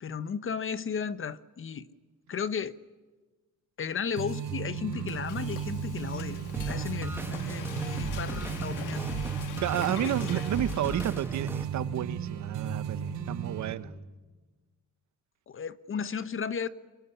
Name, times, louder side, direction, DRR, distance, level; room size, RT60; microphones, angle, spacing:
voice 1, 0.0-1.9 2.3-2.8 3.8-6.4 6.7-9.1 9.8-10.4 15.5-16.7, left 6 dB, 45° left, 1.1 m, -34 dB
sound 1, 4.2-13.7, right 7 dB, 85° right, 4.5 m, -35 dB
Frying (food), 4.6-11.7, left 11 dB, 85° left, 1.8 m, -45 dB
sound 2, 6.5-11.6, right 2 dB, 5° right, 2.4 m, -38 dB
voice 2, 9.6-13.9, right 11 dB, 70° right, 1.1 m, -31 dB
24.0 x 24.0 x 9.9 m
cardioid pair, 90°, 30 cm